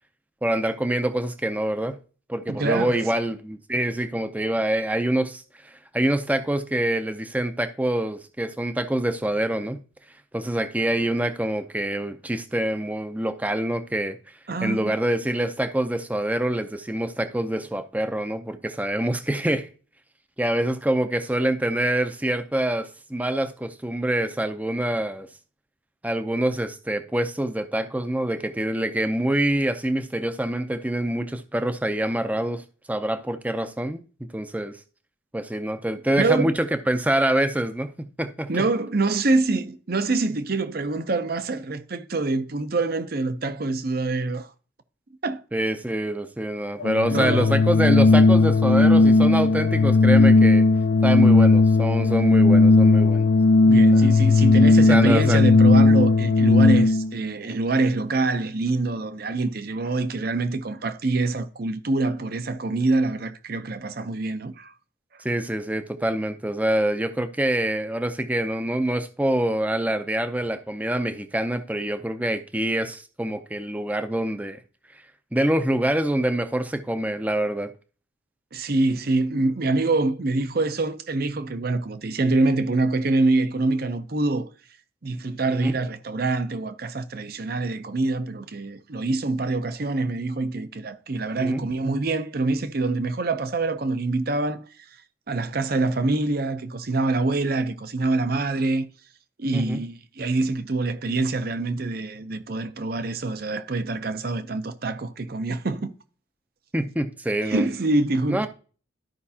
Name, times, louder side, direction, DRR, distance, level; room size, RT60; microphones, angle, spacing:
voice 1, 0.4-2.0 2.3-9.8 10.3-14.2 14.6-19.7 20.4-25.3 26.0-32.6 32.9-34.0 34.3-34.8 35.3-38.5 45.5-50.7 51.0-53.3 53.9-54.0 54.9-55.4 65.2-74.6 75.3-77.7 85.5-85.8 91.4-91.6 99.5-99.8 106.7-107.7 108.3-108.5, right 1 dB, 10° right, 0.5 m, -25 dB
voice 2, 2.5-3.0 14.5-14.9 36.2-36.5 38.5-44.5 45.2-45.4 47.1-47.6 53.6-64.7 78.5-84.5 85.0-94.6 95.3-98.8 99.4-105.9 107.4-108.5, right 2 dB, 50° right, 0.6 m, -25 dB
Organ, 46.8-57.1, left 3 dB, 65° left, 0.5 m, -16 dB
13.0 x 5.2 x 2.8 m
head